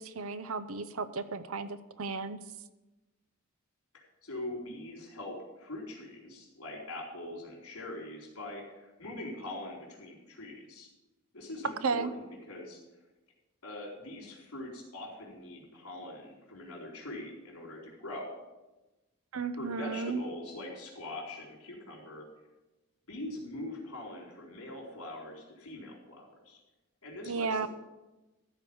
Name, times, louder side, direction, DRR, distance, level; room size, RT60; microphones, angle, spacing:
voice 1, 0.0-2.4 11.8-12.1 19.3-20.2 27.2-27.7, right 4 dB, 65° right, 12 dB, 0.7 m, -34 dB
voice 2, 3.9-10.9 11.3-12.8 13.6-18.3 19.5-22.3 23.1-26.6 27.0-27.7, left 1 dB, 70° left, -3 dB, 4.1 m, -43 dB
14.0 x 4.8 x 7.0 m, 1.1 s
head